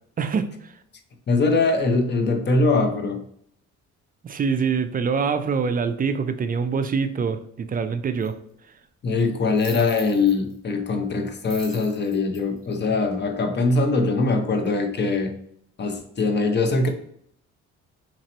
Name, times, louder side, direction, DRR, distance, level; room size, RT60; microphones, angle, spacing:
voice 1, 0.2-0.5 4.2-8.4, right 5 dB, 30° right, 0.4 m, -24 dB
voice 2, 1.3-3.2 9.0-15.3 15.8-16.9, left 3 dB, 35° left, 0.7 m, -22 dB
sound 1, 8.2-8.3 9.5-10.5 11.4-13.2, right 1 dB, ahead, 1.4 m, -41 dB
3.0 x 2.9 x 4.0 m
cardioid pair, 90°, 30 cm